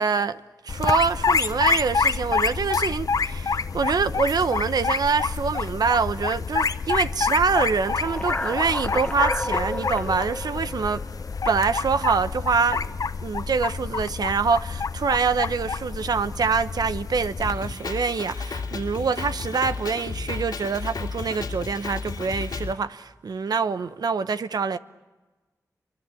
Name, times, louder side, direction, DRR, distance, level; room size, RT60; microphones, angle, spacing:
voice 1, 0.0-11.0 11.4-12.9 13.2-24.8, right 5 dB, 75° right, 0.9 m, -25 dB
sound 1, 0.7-17.5, left 5 dB, 65° left, 0.8 m, -27 dB
sound 2, 7.6-11.8, left 2 dB, 20° left, 1.1 m, -32 dB
Drum kit, 17.4-22.7, left 4 dB, 80° left, 2.4 m, -33 dB
28.5 x 24.5 x 8.4 m
cardioid pair, 45°, 7 cm